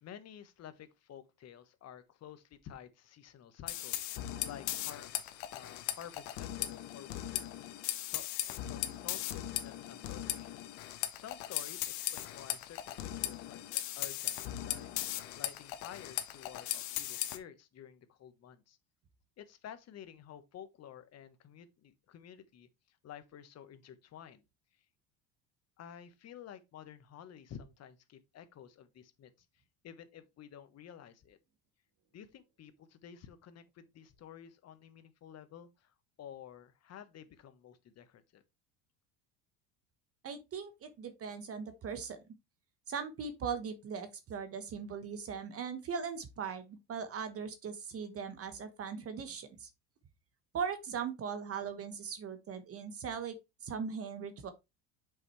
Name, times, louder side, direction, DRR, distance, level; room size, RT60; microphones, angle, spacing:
voice 1, 0.0-5.1 5.5-7.7 8.0-10.7 11.1-14.9 15.3-18.8 19.4-24.4 25.8-29.3 29.8-31.4 32.1-38.4, left 9 dB, 40° left, 1.3 m, -52 dB
sound 1, 3.7-17.4, left 13 dB, 75° left, 1.3 m, -38 dB
voice 2, 40.2-42.2 42.9-49.7 50.5-54.5, right 6 dB, 35° right, 1.2 m, -39 dB
7.5 x 5.9 x 3.2 m
supercardioid pair, 115°, 38 cm